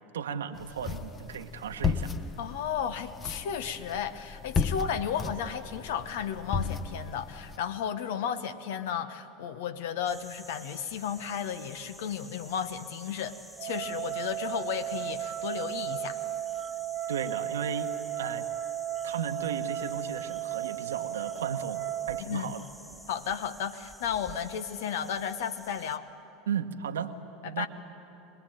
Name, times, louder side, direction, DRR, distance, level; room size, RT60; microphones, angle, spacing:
voice 1, 0.1-2.1 17.1-17.9 18.2-18.5 19.0-21.8 22.1-22.6 26.5-27.1 27.4-27.7, right 7 dB, 80° right, 7 dB, 1.2 m, -35 dB
sound 1, 0.6-7.6, left 5 dB, 30° left, 1.1 m, -34 dB
voice 2, 2.4-16.2 22.3-22.6 23.1-26.1 27.4-27.7, left 8 dB, 70° left, 10 dB, 1.1 m, -34 dB
sound 2, 10.0-26.0, right 1 dB, ahead, 1.6 m, -50 dB
sound 3, 13.6-22.2, right 12 dB, 50° right, 0.8 m, -35 dB
26.0 x 20.5 x 9.1 m, 2.9 s
hypercardioid pair, 80°, 0 cm